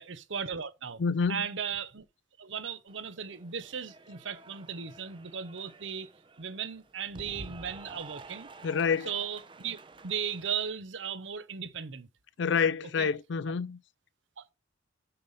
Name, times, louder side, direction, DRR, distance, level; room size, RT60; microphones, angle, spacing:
voice 1, 0.0-1.0 1.3-2.0 2.4-6.1 6.4-8.5 9.1-9.8 10.0-12.1 13.0-13.1 14.4-14.5, right 7 dB, 75° right, 0.8 m, -36 dB
voice 2, 1.0-1.4 8.6-9.1 12.4-13.8, left 5 dB, 65° left, 0.4 m, -27 dB
Cheering / Applause, 2.9-10.6, right 3 dB, 25° right, 0.7 m, -50 dB
6.8 x 5.7 x 5.2 m
head